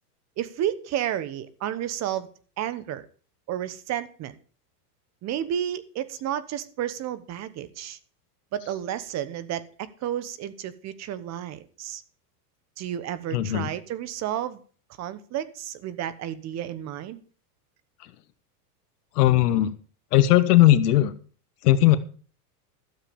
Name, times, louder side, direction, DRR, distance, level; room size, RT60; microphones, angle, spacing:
voice 1, 0.4-2.3 2.6-3.0 3.5-4.3 5.2-8.0 8.5-12.0 12.8-14.6 15.0-17.2, right 11 dB, 35° right, 16 dB, 1.2 m, -31 dB
voice 2, 13.3-13.7 19.2-19.7 20.1-21.1 21.6-22.0, left 14 dB, 70° left, 12 dB, 1.3 m, -18 dB
13.0 x 7.3 x 7.0 m, 0.41 s
supercardioid pair, 130°, 47 cm